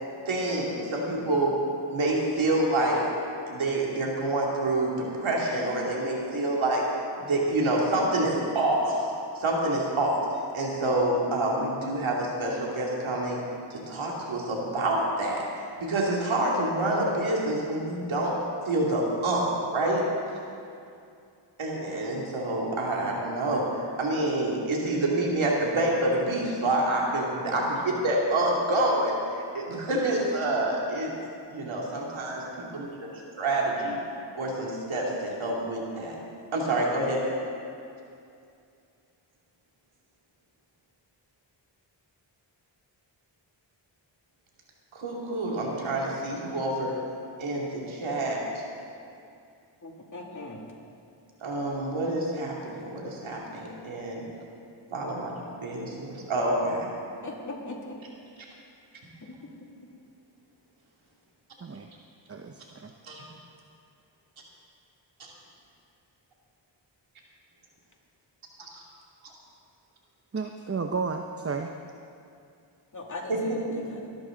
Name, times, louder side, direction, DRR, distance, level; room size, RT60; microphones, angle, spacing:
voice 1, 0.3-1.5 1.9-3.0 3.5-6.8 7.2-9.1 9.4-10.2 10.5-13.4 13.7-15.4 15.8-18.3 18.6-20.0 21.6-23.7 24.0-31.1 31.5-32.4 32.7-32.9 33.4-34.0 34.4-36.2 36.5-37.2 44.9-46.9 47.4-48.4 51.4-54.2 54.9-55.3 55.6-56.9 63.1-63.2 68.6-68.7 73.3-73.8, right 1 dB, 85° right, -3 dB, 2.7 m, -27 dB
voice 2, 49.8-50.6 57.2-58.0 59.8-59.9 72.9-74.1, left 2 dB, 40° left, 0 dB, 2.5 m, -39 dB
voice 3, 62.3-62.9 70.3-71.7, right 4 dB, 30° right, 4 dB, 0.8 m, -32 dB
20.0 x 12.5 x 3.9 m, 2.5 s
cardioid pair, 55°, 46 cm